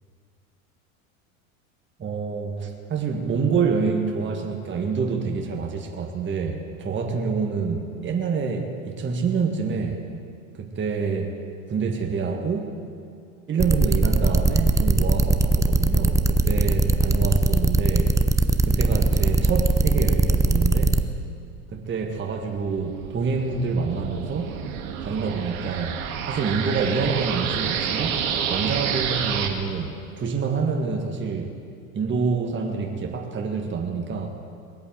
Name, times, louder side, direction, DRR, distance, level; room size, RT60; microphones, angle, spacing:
voice 1, 2.0-10.0 10.5-11.4 11.7-12.7 13.5-18.1 18.6-21.0 21.7-24.5 25.0-26.0 26.3-28.2 28.5-31.5 31.9-34.3, right 5 dB, 25° right, 1 dB, 1.8 m, -27 dB
sound 1, 13.6-21.0, right 3 dB, 10° right, 0.6 m, -20 dB
sound 2, 22.3-29.5, right 7 dB, 75° right, 1.8 m, -29 dB
20.0 x 8.5 x 7.6 m, 2.3 s
hypercardioid pair, 95°, 42 cm